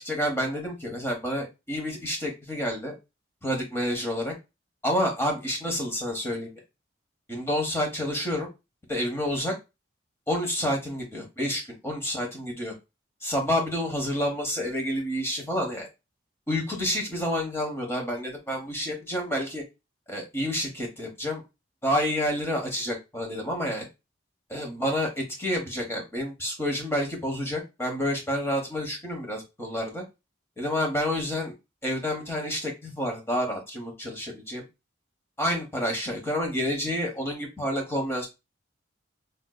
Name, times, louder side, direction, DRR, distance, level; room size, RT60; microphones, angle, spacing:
voice 1, 0.0-2.9 3.4-4.3 4.8-6.5 7.3-8.5 8.9-9.5 10.3-12.7 13.2-15.9 16.5-19.6 20.1-21.4 21.8-23.9 24.5-30.0 30.6-31.5 31.8-34.6 35.4-38.3, equal, 10° left, 1 dB, 0.9 m, -29 dB
3.5 x 2.6 x 2.2 m, 0.24 s
head